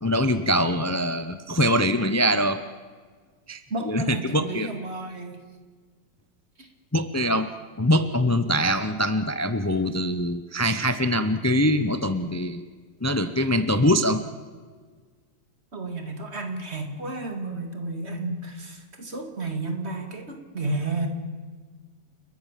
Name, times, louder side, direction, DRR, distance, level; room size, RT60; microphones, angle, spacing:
voice 1, 0.0-2.6 3.5-3.6 3.9-4.7 6.9-7.5 7.8-12.6 13.0-14.2, equal, 25° left, 11 dB, 0.3 m, -23 dB
voice 2, 3.7-5.4 6.6-6.7 15.7-21.1, right 2 dB, 35° right, 5 dB, 2.7 m, -32 dB
30.0 x 14.5 x 7.4 m, 1.5 s
omnidirectional pair, 1.9 m